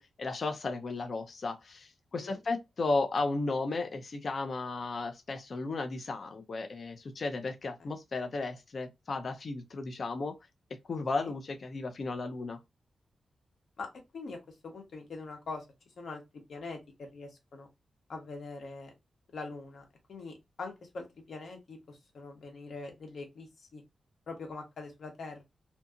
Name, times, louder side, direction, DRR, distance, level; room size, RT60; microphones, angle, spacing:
voice 1, 0.0-10.3 10.9-12.6, left 3 dB, 45° left, 0.4 m, -34 dB
voice 2, 14.6-15.6 16.0-16.2 16.5-17.7 18.1-18.9 19.3-23.8 24.3-25.4, left 3 dB, 60° left, 0.9 m, -43 dB
2.7 x 2.6 x 2.3 m
wide cardioid pair, 175°, 0 cm